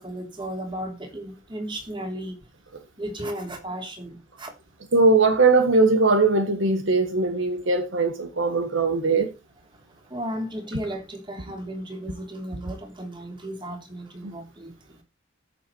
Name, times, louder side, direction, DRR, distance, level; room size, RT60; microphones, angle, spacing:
voice 1, 0.0-2.4 3.0-4.5 9.7-15.0, right 1 dB, 20° right, 3.1 m, -35 dB
voice 2, 4.9-9.3 14.2-14.3, right 3 dB, 60° right, 1.5 m, -20 dB
15.0 x 7.0 x 4.6 m
head